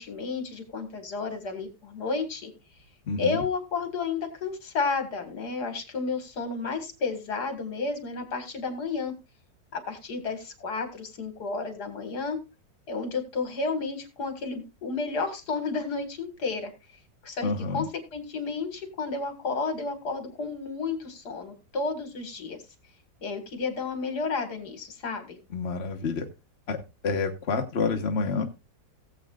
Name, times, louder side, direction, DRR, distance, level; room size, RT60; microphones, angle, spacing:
voice 1, 0.0-2.5 3.2-9.1 9.7-12.4 12.9-16.7 17.2-17.9 18.1-22.6 23.2-25.4, left 4 dB, 60° left, 7 dB, 2.3 m, -31 dB
voice 2, 3.1-3.4 17.4-17.8 25.5-26.3 26.7-26.8 27.0-28.4, left 4 dB, 40° left, 3 dB, 1.2 m, -28 dB
18.0 x 7.7 x 2.4 m, 0.26 s
omnidirectional pair, 2.0 m